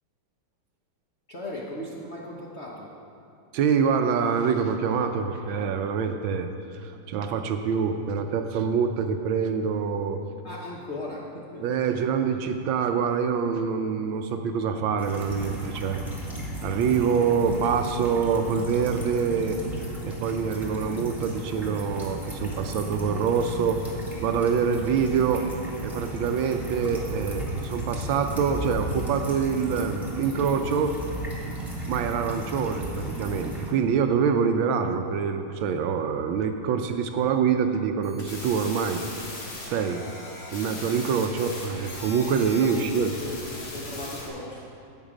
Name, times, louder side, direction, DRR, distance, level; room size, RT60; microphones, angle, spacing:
voice 1, 1.3-2.9 10.4-12.0 42.6-44.8, left 1 dB, 50° left, -4 dB, 0.8 m, -38 dB
voice 2, 3.5-10.2 11.6-16.0 16.6-19.6 20.0-23.8 24.2-25.5 25.8-30.9 31.9-39.0 39.6-40.0 40.5-43.1, right 6 dB, 75° right, 6 dB, 1.3 m, -25 dB
sound 1, 15.0-33.7, right 1 dB, ahead, 1.5 m, -35 dB
sound 2, 38.0-44.3, left 2 dB, 85° left, 2.7 m, -38 dB
11.0 x 8.1 x 5.0 m, 2.7 s
omnidirectional pair, 2.4 m